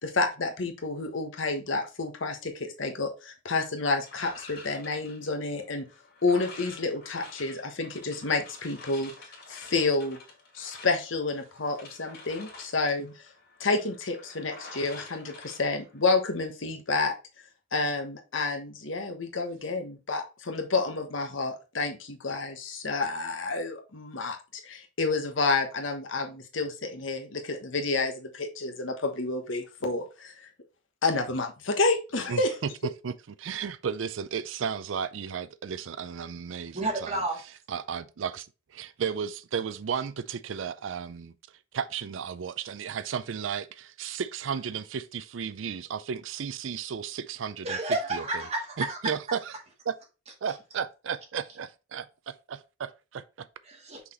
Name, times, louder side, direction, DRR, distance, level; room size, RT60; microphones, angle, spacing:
voice 1, 0.0-5.8 6.2-9.1 9.5-10.2 10.5-13.1 13.6-17.1 17.7-30.4 31.0-32.5, left 3 dB, 85° left, 1.2 m, -29 dB
sound 1, 4.0-16.3, left 3 dB, 55° left, 2.4 m, -48 dB
voice 2, 32.3-32.7 33.0-33.1 33.4-37.2 37.7-41.3 41.7-47.8 48.1-48.2 48.8-49.5 49.9-50.0 50.4-53.5, right 7 dB, 80° right, 0.4 m, -34 dB
voice 3, 36.7-37.4 47.6-49.1 53.7-54.0, right 2 dB, 35° right, 2.2 m, -31 dB
5.8 x 4.0 x 4.3 m
head